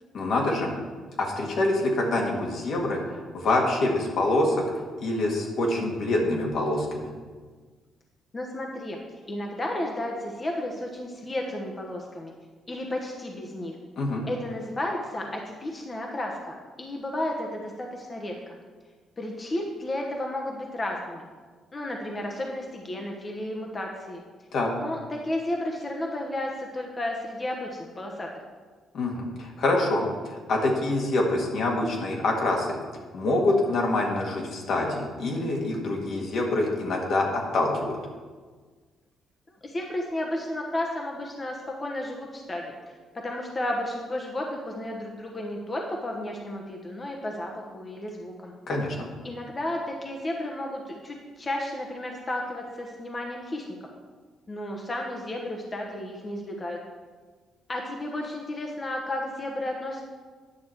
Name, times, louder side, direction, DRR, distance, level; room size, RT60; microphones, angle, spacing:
voice 1, 0.1-0.7 1.2-4.7 5.0-7.1 14.0-14.2 24.5-24.7 28.9-32.8 33.1-38.0 48.7-49.0, left 2 dB, 65° left, 0 dB, 1.8 m, -26 dB
voice 2, 8.3-9.0 9.3-12.3 12.7-13.8 14.3-18.6 19.2-21.3 21.7-24.2 24.7-28.3 39.6-48.5 49.2-53.6 54.5-56.8 57.7-60.0, left 1 dB, 30° left, 0 dB, 1.1 m, -33 dB
9.8 x 6.0 x 4.6 m, 1.5 s
cardioid pair, 90°, 0 cm